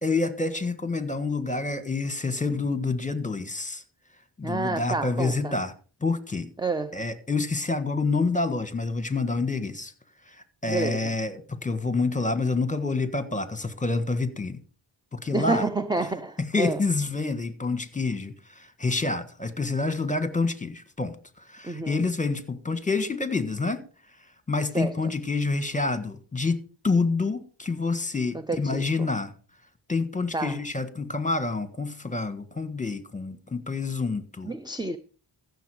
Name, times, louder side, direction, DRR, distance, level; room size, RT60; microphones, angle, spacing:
voice 1, 0.0-3.8 4.4-5.7 6.0-6.5 6.9-9.9 10.2-14.6 15.1-15.7 16.4-23.8 24.5-29.3 29.9-34.5, left 3 dB, 15° left, 1.6 m, -28 dB
voice 2, 4.4-5.5 6.6-7.0 10.7-11.1 15.3-16.8 21.6-22.0 24.7-25.0 28.3-29.1 30.3-30.6 34.4-35.0, right 3 dB, 10° right, 0.6 m, -29 dB
14.5 x 7.0 x 4.9 m
cardioid pair, 60°, 50 cm